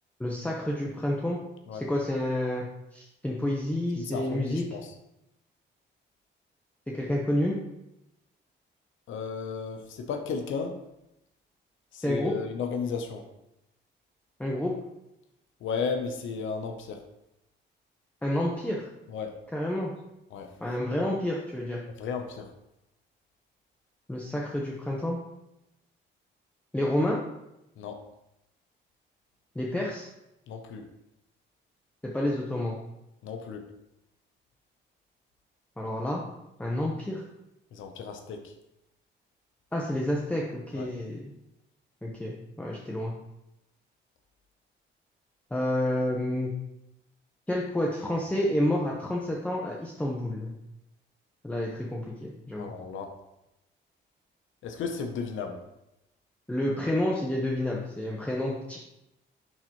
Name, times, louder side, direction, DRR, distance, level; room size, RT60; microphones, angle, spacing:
voice 1, 0.2-1.4 1.9-2.6 2.9-4.6 6.9-7.6 12.0-12.3 14.4-14.7 18.2-18.9 19.5-19.9 20.6-21.8 24.1-25.2 26.7-27.2 29.5-30.1 32.0-32.8 35.8-36.2 36.6-37.2 39.7-41.3 42.0-43.1 45.5-46.5 47.5-50.5 51.4-52.7 56.5-58.8, left 1 dB, 5° left, -3 dB, 1.0 m, -29 dB
voice 2, 3.9-4.9 9.1-10.8 11.9-13.3 15.6-17.0 19.1-19.4 20.3-20.5 22.0-22.5 27.8-28.0 30.5-30.9 33.2-33.7 37.7-38.5 40.7-40.9 52.6-53.2 54.6-55.6, left 5 dB, 75° left, 5 dB, 0.8 m, -34 dB
10.5 x 3.9 x 3.1 m, 0.88 s
cardioid pair, 90°, 20 cm